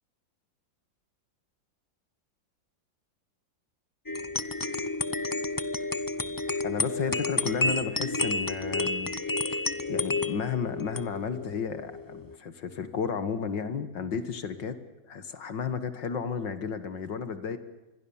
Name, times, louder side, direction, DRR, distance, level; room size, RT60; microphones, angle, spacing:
sound 1, 4.1-12.4, left 2 dB, 35° left, 0.3 m, -31 dB
voice 1, 6.6-9.1 9.5-9.6 9.9-14.8 15.1-17.6, left 6 dB, 70° left, 11 dB, 2.3 m, -33 dB
27.5 x 22.0 x 7.2 m, 1.1 s
omnidirectional pair, 2.1 m